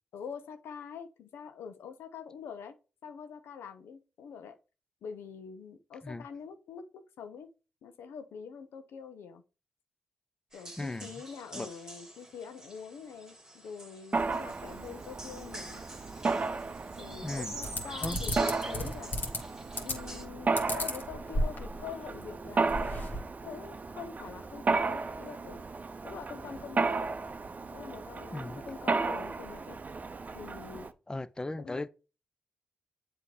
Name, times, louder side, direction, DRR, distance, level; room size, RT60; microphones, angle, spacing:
voice 1, 0.1-2.8 3.0-4.6 5.0-7.5 7.8-9.4 10.5-15.8 17.0-19.1 19.8-23.0 23.4-25.7 26.0-27.1 27.7-29.8 30.3-30.9 31.6-31.9, left 6 dB, 85° left, 0.7 m, -45 dB
sound 1, 10.5-20.2, right 1 dB, 15° right, 1.7 m, -47 dB
voice 2, 10.8-11.1 11.5-11.7 17.2-17.5 18.0-18.2 28.3-28.6 31.1-31.9, left 2 dB, 20° left, 0.5 m, -36 dB
Mechanisms, 14.1-30.9, right 4 dB, 40° right, 0.6 m, -34 dB
sound 2, 17.6-19.4 19.7-20.2 20.6-21.8 22.2-22.3 22.5-23.2, left 1 dB, 55° left, 1.7 m, -33 dB
7.6 x 2.9 x 4.8 m
supercardioid pair, 50°, 4 cm